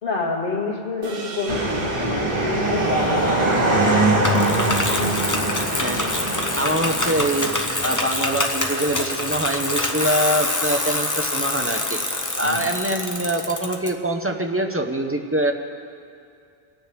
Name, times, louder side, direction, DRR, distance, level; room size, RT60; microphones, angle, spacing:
voice 1, 0.0-4.3 12.4-12.7, left 3 dB, 55° left, -4 dB, 2.3 m, -28 dB
sound 1, 1.0-5.6, right 3 dB, 65° right, 1.2 m, -39 dB
sound 2, 1.5-8.1, right 2 dB, 40° right, 1.8 m, -22 dB
Bicycle, 4.2-13.9, left 2 dB, 20° left, 0.9 m, -26 dB
voice 2, 5.8-6.1 6.6-7.5 7.8-12.0 12.4-15.5, right 1 dB, 15° right, 4 dB, 0.8 m, -24 dB
27.0 x 9.5 x 3.4 m, 2.4 s
omnidirectional pair, 1.1 m